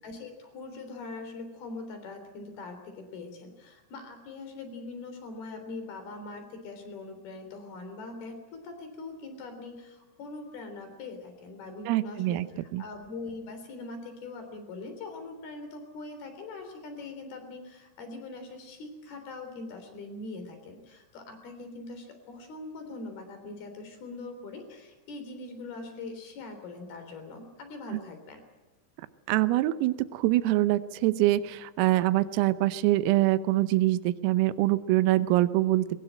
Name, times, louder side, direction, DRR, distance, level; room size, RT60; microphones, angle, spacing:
voice 1, 0.0-28.4, left 3 dB, 50° left, 7 dB, 5.2 m, -42 dB
voice 2, 11.9-12.5 12.7-12.8 27.9-28.0 29.3-36.0, right 16 dB, 85° right, 13 dB, 3.6 m, -24 dB
22.0 x 19.5 x 9.0 m, 1.2 s
omnidirectional pair, 5.9 m